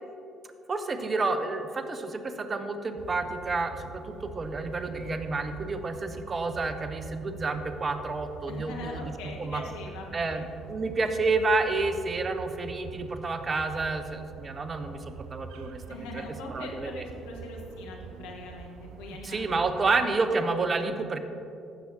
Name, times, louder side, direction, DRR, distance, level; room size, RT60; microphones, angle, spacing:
voice 1, 0.7-9.1 9.4-9.6 10.1-17.0 19.2-21.2, right 3 dB, 35° right, 8 dB, 0.8 m, -30 dB
sound 1, 3.0-20.2, right 5 dB, 70° right, 0.4 m, -45 dB
voice 2, 8.5-10.5 15.9-19.9, left 2 dB, 75° left, 1 dB, 1.3 m, -42 dB
15.0 x 7.1 x 2.9 m, 2.6 s
hypercardioid pair, 50°, 0 cm